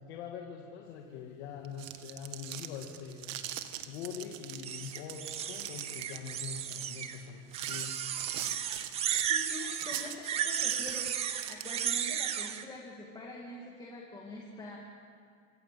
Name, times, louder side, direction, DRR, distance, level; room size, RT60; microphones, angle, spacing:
voice 1, 0.1-3.4 3.9-7.9, left 7 dB, 45° left, 1 dB, 2.4 m, -43 dB
sound 1, 1.6-12.2, right 13 dB, 60° right, 1.9 m, -43 dB
sound 2, 4.6-7.2 7.5-12.6, right 9 dB, 15° right, 0.7 m, -34 dB
voice 2, 9.3-14.8, left 2 dB, 10° left, -2 dB, 2.2 m, -45 dB
26.0 x 24.0 x 7.6 m, 2.4 s
supercardioid pair, 175°, 44 cm